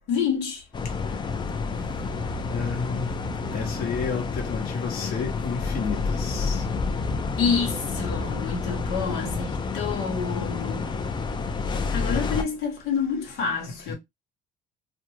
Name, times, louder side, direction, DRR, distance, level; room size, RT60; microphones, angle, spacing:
voice 1, 0.1-0.6 7.4-11.0 11.9-13.9, left 6 dB, 85° left, 1.0 m, -28 dB
sound 1, 0.7-12.4, left 4 dB, 25° left, 0.4 m, -29 dB
voice 2, 2.5-3.1 3.5-6.7 12.1-12.2 13.9-14.0, left 5 dB, 60° left, 0.9 m, -31 dB
2.5 x 2.2 x 3.0 m
cardioid pair, 110°, 17 cm